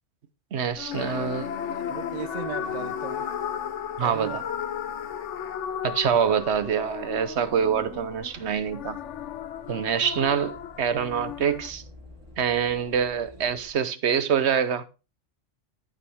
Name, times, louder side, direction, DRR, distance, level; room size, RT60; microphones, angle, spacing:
voice 1, 0.5-1.5 4.0-4.4 5.8-9.0 9.7-11.8 12.4-14.9, right 7 dB, 65° right, 1.1 m, -25 dB
sound 1, 0.7-13.7, equal, 20° right, 3.8 m, -51 dB
sound 2, 0.8-11.7, left 9 dB, 75° left, 1.0 m, -35 dB
sound 3, 0.9-5.8, left 6 dB, 50° left, 0.8 m, -42 dB
voice 2, 1.9-3.3 4.0-4.4, right 8 dB, 50° right, 0.5 m, -36 dB
13.5 x 5.9 x 3.5 m
omnidirectional pair, 1.2 m